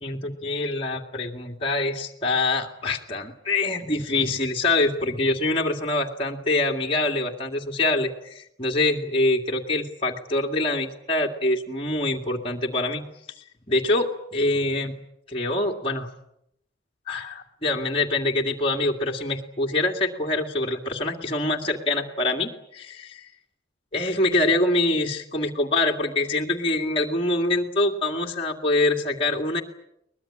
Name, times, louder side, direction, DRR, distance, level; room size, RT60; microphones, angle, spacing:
voice 1, 0.0-13.0 13.7-15.0 15.3-16.1 17.1-23.3 23.9-29.6, left 2 dB, 30° left, -1 dB, 2.1 m, -25 dB
23.0 x 20.5 x 9.9 m, 0.78 s
head